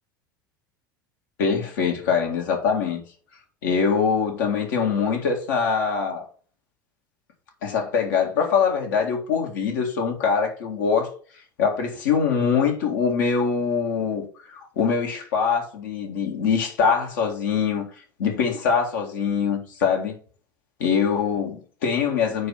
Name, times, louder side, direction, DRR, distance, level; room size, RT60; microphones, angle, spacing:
voice 1, 1.4-3.0 3.6-6.2 7.6-11.1 11.6-17.8 18.2-20.1 20.8-22.5, left 6 dB, 60° left, 2.2 m, -23 dB
9.1 x 3.2 x 5.8 m
figure-of-eight pair, 75°, 11 cm